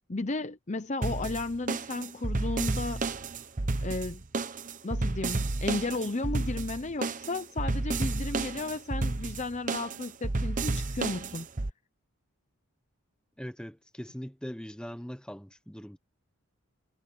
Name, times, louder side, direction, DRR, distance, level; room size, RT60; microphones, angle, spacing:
voice 1, 0.1-3.0 3.8-4.2 4.8-11.5, left 2 dB, 35° left, 0.7 m, -34 dB
sound 1, 1.0-11.7, right 3 dB, 35° right, 0.9 m, -31 dB
voice 2, 13.4-16.0, equal, 5° left, 1.2 m, -41 dB
head